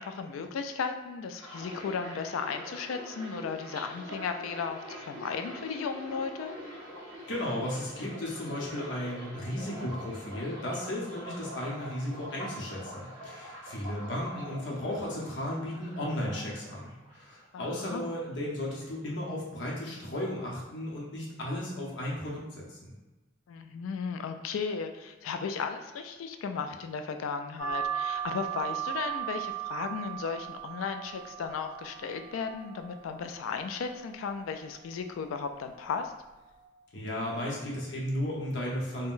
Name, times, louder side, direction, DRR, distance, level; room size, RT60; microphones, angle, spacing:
voice 1, 0.0-6.5 17.5-18.0 23.5-36.1, left 5 dB, 90° left, 7 dB, 0.3 m, -35 dB
sound 1, 1.4-17.3 17.6-18.5 18.8-19.2, equal, 25° right, 1.0 m, -44 dB
voice 2, 7.3-22.9 36.9-39.1, left 1 dB, 65° left, -4 dB, 0.8 m, -35 dB
sound 2, 27.6-36.6, right 10 dB, 70° right, 0.6 m, -38 dB
3.6 x 2.1 x 2.5 m, 1.2 s
head